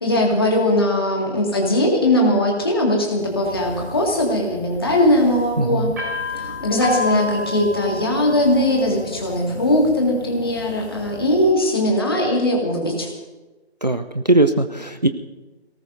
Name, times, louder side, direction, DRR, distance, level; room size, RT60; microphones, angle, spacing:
voice 1, 0.0-5.9 6.3-13.1, left 1 dB, 20° left, -1 dB, 2.0 m, -20 dB
sound 1, 3.1-11.5, left 1 dB, 15° right, 4.2 m, -32 dB
voice 2, 5.6-5.9 13.8-15.1, right 2 dB, 40° right, 9 dB, 0.6 m, -19 dB
27.5 x 18.5 x 2.6 m, 1.2 s
figure-of-eight pair, 165°, 33 cm